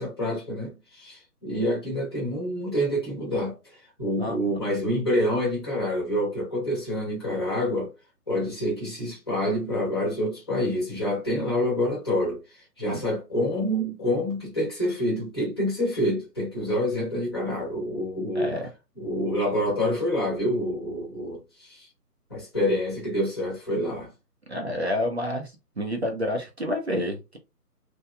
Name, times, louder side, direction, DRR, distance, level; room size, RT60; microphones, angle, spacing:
voice 1, 0.0-7.9 8.3-18.5 19.0-21.9 22.3-24.1, equal, 15° left, 0.9 m, -27 dB
voice 2, 4.2-4.5 12.9-13.0 18.3-18.7 24.5-27.4, left 1 dB, 45° right, 0.5 m, -29 dB
2.9 x 2.3 x 2.2 m
figure-of-eight pair, 145°, 47 cm